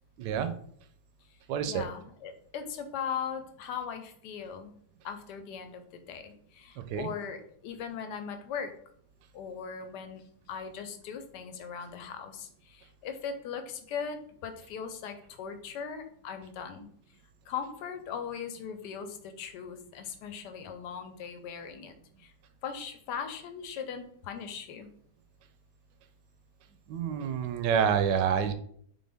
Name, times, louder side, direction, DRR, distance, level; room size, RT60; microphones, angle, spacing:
voice 1, 0.2-0.5 1.5-1.8 6.9-7.1 26.9-28.5, right 7 dB, 90° right, 9 dB, 1.2 m, -27 dB
voice 2, 1.3-4.8 5.0-8.7 9.3-16.9 17.5-22.3 22.6-24.9, left 7 dB, 80° left, 7 dB, 1.2 m, -39 dB
4.2 x 3.4 x 3.4 m, 0.63 s
omnidirectional pair, 1.8 m